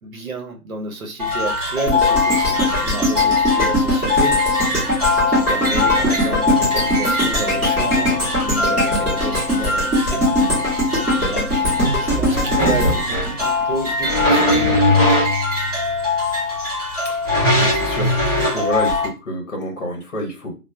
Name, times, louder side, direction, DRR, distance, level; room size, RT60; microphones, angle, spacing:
voice 1, 0.0-4.7 5.1-10.3 10.5-10.8 11.2-11.6 12.0-14.9, right 3 dB, 60° right, 3 dB, 0.8 m, -31 dB
sound 1, 1.2-19.1, left 4 dB, 25° right, 0.8 m, -23 dB
sound 2, 1.9-14.1 14.5-14.6, equal, 5° right, 1.1 m, -21 dB
sound 3, 12.1-13.3 14.0-15.8 17.2-18.6, equal, 15° left, 1.4 m, -19 dB
voice 2, 17.0-20.5, equal, 50° left, 1 dB, 0.9 m, -28 dB
2.8 x 2.1 x 2.3 m, 0.31 s
hypercardioid pair, 175°, 46 cm